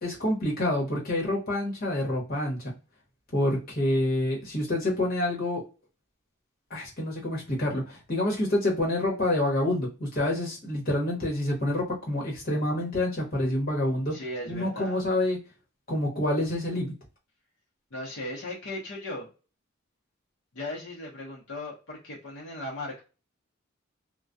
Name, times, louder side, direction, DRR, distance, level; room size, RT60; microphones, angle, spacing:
voice 1, 0.0-2.7 3.3-5.6 6.7-14.1 14.5-15.4 15.9-16.9, left 1 dB, 45° left, -3 dB, 1.1 m, -27 dB
voice 2, 14.1-15.0 17.9-19.3 20.5-23.0, left 1 dB, 70° left, -4 dB, 0.8 m, -37 dB
2.2 x 2.2 x 2.6 m, 0.32 s
head